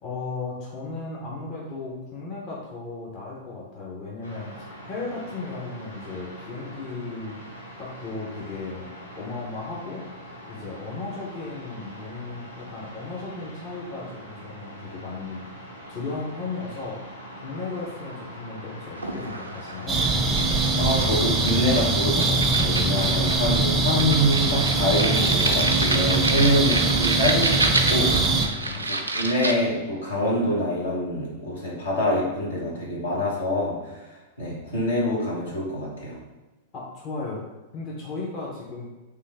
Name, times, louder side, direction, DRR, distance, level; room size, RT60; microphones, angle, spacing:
voice 1, 0.0-7.4 7.8-8.9 9.2-10.0 10.5-15.4 15.9-20.1 28.6-28.8 36.7-37.4 37.7-38.9, left 3 dB, 35° left, -4 dB, 0.7 m, -35 dB
sound 1, 4.2-19.9, equal, 90° left, 0.8 m, -43 dB
sound 2, 18.9-29.5, right 2 dB, 80° right, 0.3 m, -30 dB
sound 3, 19.9-28.5, right 3 dB, 15° right, 0.5 m, -22 dB
voice 2, 20.8-28.5 28.9-33.7 34.4-36.1, equal, 75° left, -5 dB, 1.2 m, -25 dB
3.3 x 2.4 x 3.4 m, 1.1 s
figure-of-eight pair, 100°, 0 cm